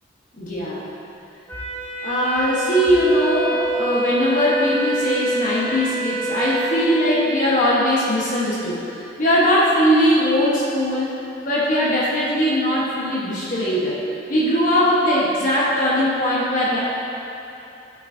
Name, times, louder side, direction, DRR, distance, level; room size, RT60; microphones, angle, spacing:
voice 1, 0.4-0.8 2.0-8.8 9.2-11.1 11.4-14.0 14.3-16.8, equal, 45° left, -7 dB, 1.2 m, -20 dB
Wind instrument woodwind instrument, 1.5-7.2, right 1 dB, 15° left, 1.5 m, -26 dB
12.0 x 6.0 x 2.7 m, 2.9 s
head